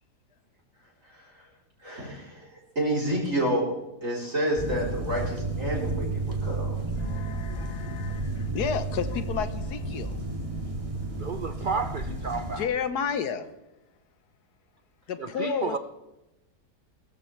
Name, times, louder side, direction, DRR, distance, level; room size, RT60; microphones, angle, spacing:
voice 1, 1.8-3.6 4.0-6.7, right 1 dB, 50° right, -4 dB, 4.3 m, -29 dB
sound 1, 4.6-12.7, right 2 dB, 20° right, 2.0 m, -32 dB
voice 2, 7.0-10.1 12.6-13.5 15.1-15.8, left 7 dB, 70° left, 11 dB, 1.5 m, -31 dB
voice 3, 11.2-12.7 15.2-15.8, right 4 dB, 90° right, 9 dB, 0.4 m, -31 dB
21.5 x 14.0 x 3.3 m, 0.96 s
omnidirectional pair, 1.8 m